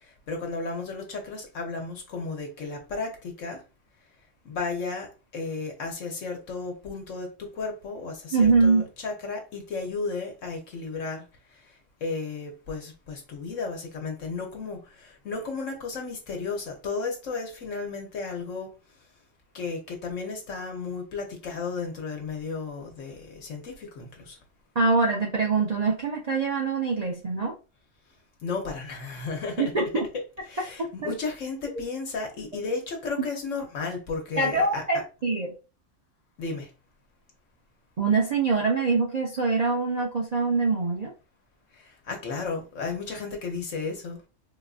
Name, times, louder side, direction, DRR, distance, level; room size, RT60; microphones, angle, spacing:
voice 1, 0.3-3.1 3.4-3.6 4.4-5.1 5.3-11.2 12.0-18.7 19.5-24.4 28.4-29.7 30.1-34.8 36.4-36.7 42.1-44.2, left 4 dB, 75° left, 1.3 m, -33 dB
voice 2, 8.3-8.8 24.8-27.5 29.6-30.0 31.0-31.1 31.8-31.9 34.4-35.5 38.0-41.1, right 4 dB, 45° right, 0.6 m, -24 dB
3.9 x 2.5 x 2.4 m
omnidirectional pair, 1.3 m